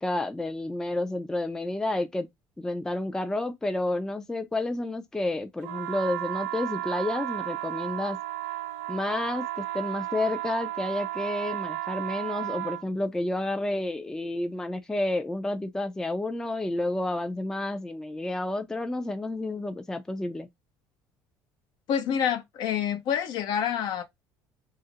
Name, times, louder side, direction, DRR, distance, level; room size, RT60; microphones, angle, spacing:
voice 1, 0.0-2.3 2.6-8.2 8.9-20.5, left 2 dB, 5° left, 0.3 m, -30 dB
sound 1, 5.6-12.8, right 16 dB, 75° right, 0.7 m, -33 dB
voice 2, 21.9-24.0, left 8 dB, 65° left, 0.6 m, -27 dB
2.4 x 2.1 x 2.7 m
supercardioid pair, 95°, 8 cm